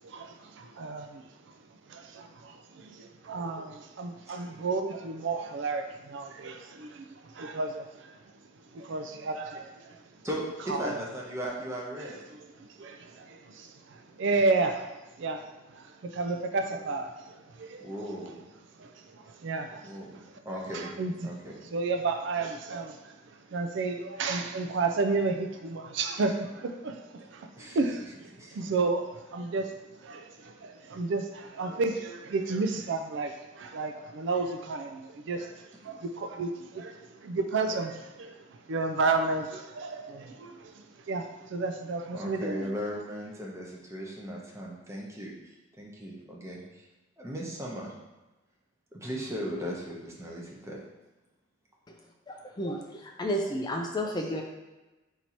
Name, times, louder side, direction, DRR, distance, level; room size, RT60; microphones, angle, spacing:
voice 1, 0.0-1.2 1.9-8.2 8.7-10.0 10.7-11.0 12.0-18.2 18.8-20.3 20.7-21.3 21.7-23.2 23.5-29.7 30.0-38.4 38.7-42.7, right 3 dB, 65° right, 6 dB, 0.4 m, -32 dB
voice 2, 10.2-12.2 16.6-16.9 17.8-18.4 19.8-20.9 21.2-21.6 27.6-27.8 28.3-28.6 42.1-45.3 45.8-46.8 47.2-47.9 48.9-50.8, equal, 15° right, -3 dB, 0.9 m, -37 dB
voice 3, 52.3-54.4, equal, 20° left, 2 dB, 0.4 m, -32 dB
4.4 x 2.7 x 4.4 m, 1.1 s
head